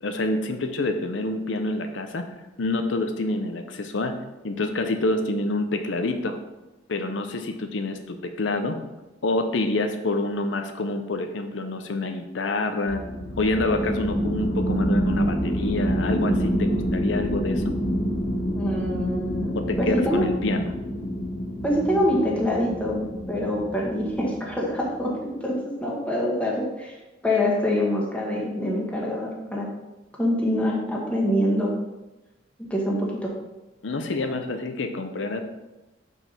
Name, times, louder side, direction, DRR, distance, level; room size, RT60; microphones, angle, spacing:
voice 1, 0.0-2.2 2.6-4.2 4.4-6.4 6.9-8.8 9.2-13.0 13.4-17.8 19.5-20.7 33.8-35.4, left 2 dB, 80° left, 6 dB, 0.6 m, -27 dB
sound 1, 12.9-25.0, equal, 65° left, 1.8 m, -27 dB
voice 2, 18.5-20.2 21.6-23.0 23.3-26.9 27.2-29.7 30.2-31.7 32.7-33.3, left 1 dB, 5° left, -3 dB, 1.5 m, -25 dB
5.6 x 4.7 x 5.5 m, 1.0 s
head